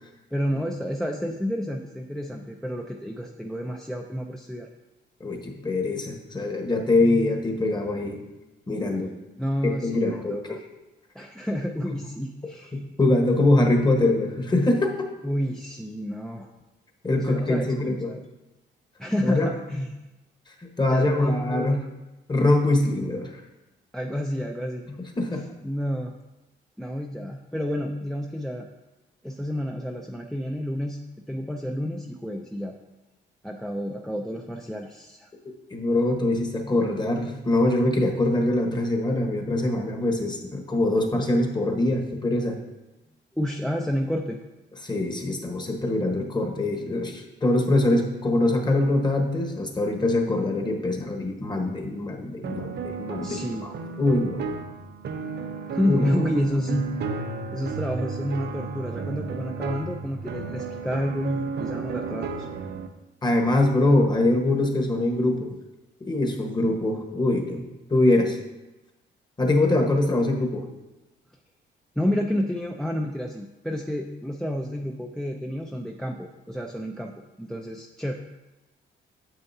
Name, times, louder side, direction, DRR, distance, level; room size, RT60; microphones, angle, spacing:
voice 1, 0.3-4.7 9.4-10.6 11.1-12.8 15.2-16.5 17.2-18.2 19.0-19.9 20.9-21.9 23.9-24.8 25.6-26.1 26.8-28.7 29.2-31.0 31.3-32.7 33.4-35.3 43.4-44.4 53.2-53.7 55.7-56.9 57.5-62.5 72.0-78.1, equal, 5° left, 2 dB, 0.5 m, -29 dB
voice 2, 5.2-8.3 8.7-9.1 9.6-10.6 12.7-15.1 17.0-18.1 19.2-19.5 20.8-21.8 22.3-23.3 25.2-25.4 35.7-42.6 44.8-53.7 54.0-54.4 55.9-56.0 63.2-65.5 66.0-68.4 69.4-70.6, left 2 dB, 20° left, 3 dB, 1.3 m, -23 dB
sound 1, 52.4-62.9, right 4 dB, 55° right, 0.6 m, -33 dB
9.0 x 6.8 x 2.7 m, 1.0 s
cardioid pair, 90°, 20 cm